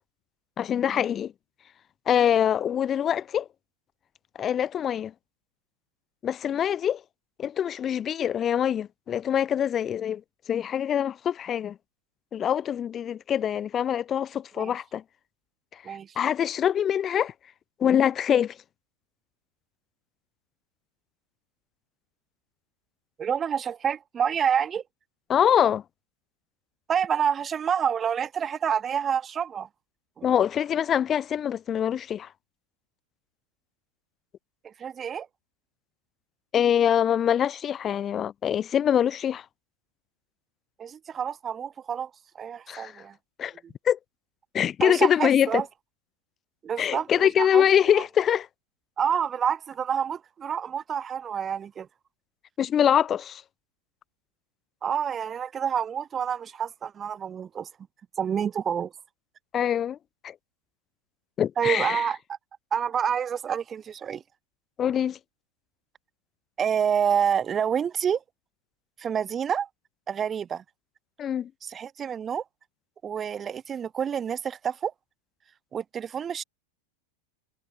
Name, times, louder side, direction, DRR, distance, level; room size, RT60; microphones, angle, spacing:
voice 1, 0.6-1.3 2.1-3.5 4.4-5.1 6.2-7.0 7.4-10.2 10.5-11.8 12.3-15.0 15.9-17.3 17.8-18.6 25.3-25.8 30.2-32.3 36.5-39.4 42.7-43.0 43.4-43.5 43.9-44.0 44.5-45.6 46.8-48.5 52.6-53.4 59.5-60.0 60.2-60.3 61.4-62.0 64.8-65.2 71.2-71.5, left 9 dB, 25° left, 0.5 m, -24 dB
voice 2, 23.2-24.8 26.9-29.7 30.2-30.3 34.6-35.3 40.8-42.1 42.3-43.1 44.8-45.6 46.6-47.6 47.9-48.0 49.0-51.9 54.8-57.7 58.2-58.9 61.6-62.2 62.7-64.2 66.6-68.2 69.0-69.7 70.1-70.6 71.6-72.4 73.0-74.9 75.7-76.4, right 8 dB, 20° right, 1.4 m, -28 dB
figure-of-eight pair, 90°, 0 cm